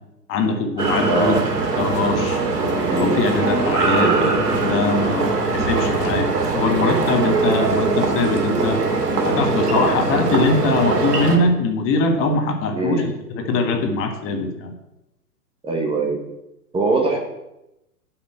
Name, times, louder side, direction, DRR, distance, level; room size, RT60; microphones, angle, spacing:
voice 1, 0.3-1.4 1.8-2.4 2.9-8.8 9.2-14.7, left 3 dB, 25° left, 4 dB, 1.6 m, -22 dB
sound 1, 0.8-11.4, right 3 dB, 75° right, 2.9 m, -21 dB
voice 2, 1.1-1.4 2.8-3.2 4.0-4.4 12.7-13.1 15.6-16.2 16.7-17.2, right 3 dB, 10° right, 1 dB, 1.3 m, -22 dB
9.3 x 6.0 x 7.8 m, 0.90 s
hypercardioid pair, 125°, 48 cm